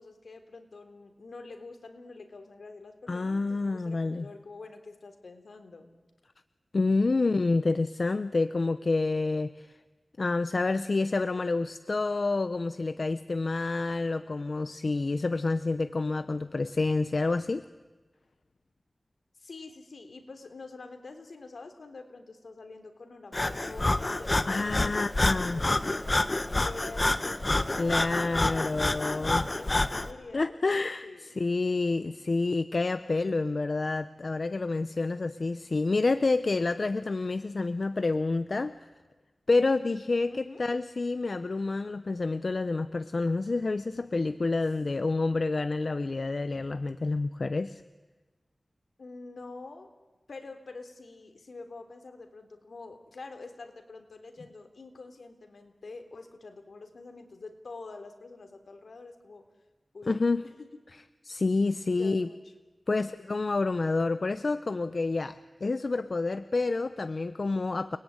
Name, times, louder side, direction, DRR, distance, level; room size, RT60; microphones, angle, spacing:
voice 1, 0.0-5.9 19.4-30.6 31.0-31.4 40.3-40.6 49.0-49.9 50.3-59.5 59.9-60.1 60.4-60.7 61.9-62.4, left 3 dB, 80° left, 6 dB, 3.4 m, -46 dB
voice 2, 3.1-4.3 6.7-9.8 10.2-17.7 24.5-25.6 27.8-29.5 30.3-38.7 39.5-47.8 60.1-60.4 61.2-62.3 62.9-68.0, left 3 dB, 55° left, 12 dB, 0.8 m, -28 dB
Breathing, 23.3-30.1, left 2 dB, 35° left, 1.5 m, -28 dB
30.0 x 20.5 x 9.7 m, 1.2 s
wide cardioid pair, 75°, 0 cm